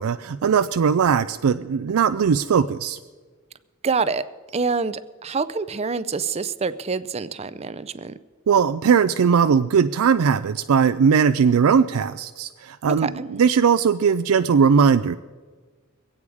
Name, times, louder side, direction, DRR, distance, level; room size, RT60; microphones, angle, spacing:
voice 1, 0.0-3.0 8.5-15.1, right 6 dB, 85° right, 10 dB, 0.4 m, -19 dB
voice 2, 3.8-4.3 4.5-8.2 13.0-13.3, right 4 dB, 30° right, 14 dB, 0.5 m, -26 dB
23.0 x 8.7 x 4.8 m, 1.4 s
head